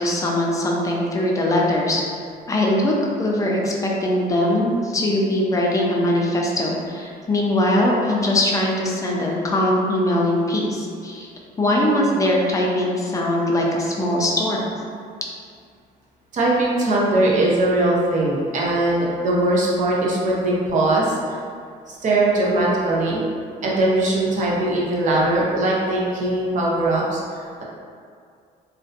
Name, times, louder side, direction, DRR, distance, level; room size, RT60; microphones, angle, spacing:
voice 1, 0.0-2.0 2.5-11.3 11.6-14.7, left 1 dB, 20° left, -2 dB, 0.4 m, -21 dB
voice 2, 16.3-21.1 21.9-23.2 23.6-27.6, right 2 dB, 50° right, -5 dB, 0.6 m, -20 dB
2.5 x 2.1 x 2.5 m, 2.2 s
cardioid pair, 110°, 17 cm